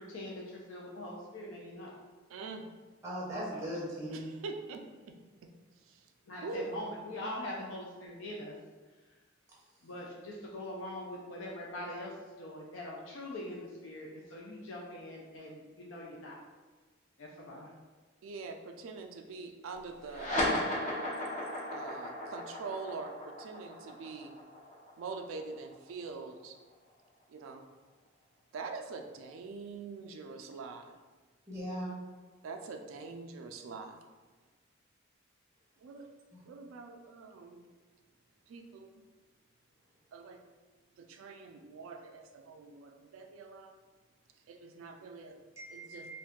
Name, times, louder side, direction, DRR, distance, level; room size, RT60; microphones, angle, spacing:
voice 1, 0.0-1.9 3.5-3.7 6.3-8.5 9.1-9.2 9.8-16.4 17.2-17.7, left 1 dB, 75° left, -3 dB, 0.4 m, -43 dB
voice 2, 2.3-2.7 4.1-6.1 6.4-6.7 18.2-20.4 21.7-24.4 25.0-26.5 27.3-27.7 28.5-31.0 32.4-34.0 35.8-36.1 36.5-37.7 38.5-39.0 40.1-40.4 41.0-43.8 44.5-45.4 45.7-46.1, right 4 dB, 85° right, 5 dB, 0.3 m, -44 dB
voice 3, 3.0-4.3 31.5-31.9 45.6-46.1, equal, 15° right, -7 dB, 0.6 m, -39 dB
sound 1, 20.0-26.9, left 1 dB, 40° left, 0.7 m, -36 dB
2.5 x 2.3 x 3.5 m, 1.3 s
head